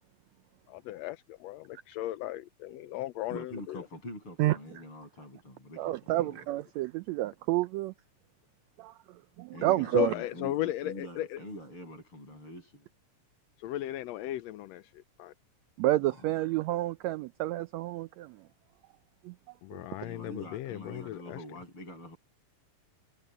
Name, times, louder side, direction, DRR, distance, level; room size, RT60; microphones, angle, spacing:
voice 1, 0.7-3.8 9.9-11.4 13.6-15.3 19.6-21.4, left 14 dB, 80° left, 1.6 m, -36 dB
voice 2, 3.3-6.5 9.5-12.9 16.0-16.2 20.0-22.2, left 1 dB, 40° left, 9.0 m, -45 dB
voice 3, 5.8-7.9 8.8-10.1 15.8-18.5 19.2-19.3 19.7-19.8, right 16 dB, 80° right, 1.6 m, -30 dB
omnidirectional pair, 3.5 m